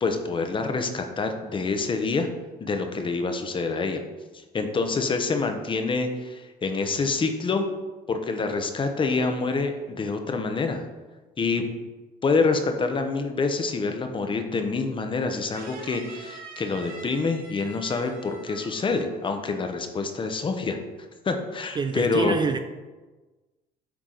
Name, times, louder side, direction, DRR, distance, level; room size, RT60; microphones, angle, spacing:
voice 1, 0.0-2.3 2.6-4.0 4.3-7.7 8.1-10.9 11.4-11.7 12.2-20.8 21.2-22.4, left 4 dB, 30° left, 6 dB, 0.8 m, -26 dB
sound 1, 15.5-19.1 19.4-19.8, right 3 dB, 60° right, 1.2 m, -45 dB
voice 2, 21.8-22.6, right 5 dB, 25° right, 8 dB, 0.4 m, -26 dB
8.4 x 4.6 x 3.9 m, 1.2 s
cardioid pair, 110°, 17 cm